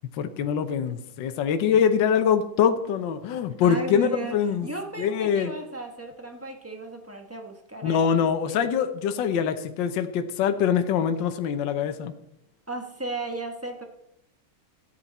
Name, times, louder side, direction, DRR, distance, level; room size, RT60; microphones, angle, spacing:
voice 1, 0.2-4.7 5.0-5.5 7.8-12.1, left 7 dB, 65° left, 8 dB, 1.4 m, -24 dB
voice 2, 3.6-4.4 4.6-8.7 12.7-13.8, right 2 dB, 10° right, 3 dB, 0.7 m, -35 dB
13.5 x 9.5 x 4.2 m, 0.79 s
omnidirectional pair, 2.4 m